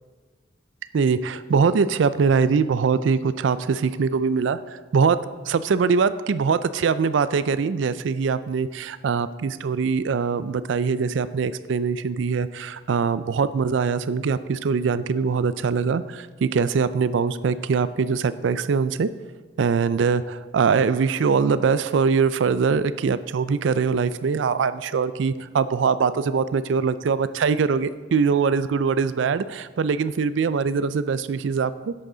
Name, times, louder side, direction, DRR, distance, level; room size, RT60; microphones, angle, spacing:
voice 1, 0.9-5.2 5.5-19.1 19.6-31.9, right 5 dB, 80° right, 15 dB, 0.4 m, -22 dB
11.0 x 7.8 x 3.9 m, 1.4 s
head